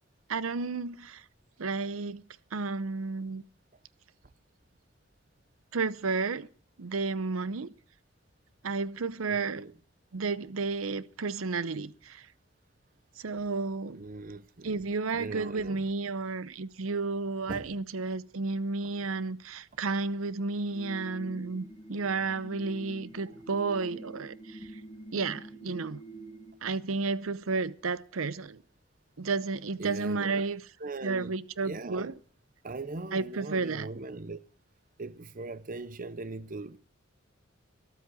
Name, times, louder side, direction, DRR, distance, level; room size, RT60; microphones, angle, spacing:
voice 1, 0.3-1.2 1.6-2.2 2.5-3.4 5.7-6.5 6.8-7.7 8.6-9.6 10.1-12.2 13.2-14.0 14.6-24.6 25.1-26.0 26.6-28.6 29.2-30.6 31.0-32.1 33.1-33.9, right 4 dB, 80° right, 0.7 m, -32 dB
voice 2, 9.3-9.7 13.9-14.8 15.1-15.8 17.5-17.7 29.8-30.4 30.8-31.4 31.6-32.1 32.6-34.4 35.0-36.8, right 3 dB, 40° right, 0.7 m, -39 dB
sound 1, 20.7-26.5, right 2 dB, 30° left, 1.7 m, -46 dB
13.0 x 12.0 x 6.2 m
head